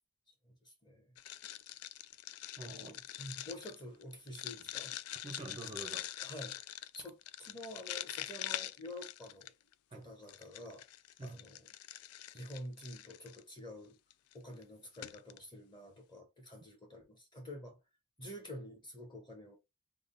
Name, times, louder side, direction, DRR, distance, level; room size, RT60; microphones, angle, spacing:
voice 1, 0.4-1.2 2.6-3.0 3.5-5.0 6.2-9.5 9.9-10.9 11.2-11.7 12.3-14.0 14.3-17.8 18.2-19.6, left 1 dB, 20° left, 1.0 m, -49 dB
sound 1, 1.2-9.7 10.3-13.4 14.1-14.3 14.6-14.7 14.9-15.4, left 13 dB, 75° left, 0.3 m, -44 dB
voice 2, 2.6-3.5 5.2-6.1 9.9-10.1 11.2-11.4, right 2 dB, 25° right, 0.5 m, -46 dB
3.5 x 2.2 x 3.8 m
head